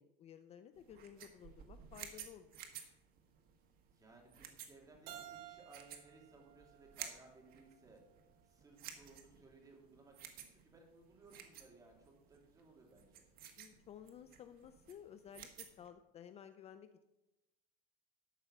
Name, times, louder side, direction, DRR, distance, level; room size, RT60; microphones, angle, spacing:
voice 1, 0.0-2.5 13.6-17.0, left 9 dB, 30° left, 10 dB, 0.5 m, -55 dB
sound 1, 0.8-15.9, right 9 dB, 50° right, 1.6 m, -54 dB
voice 2, 3.9-8.0 8.4-13.3, right 3 dB, 15° right, 0 dB, 2.7 m, -62 dB
Keyboard (musical), 5.1-7.9, right 11 dB, 70° right, 2.2 m, -55 dB
12.0 x 5.4 x 7.3 m, 1.0 s
cardioid pair, 150°, 20 cm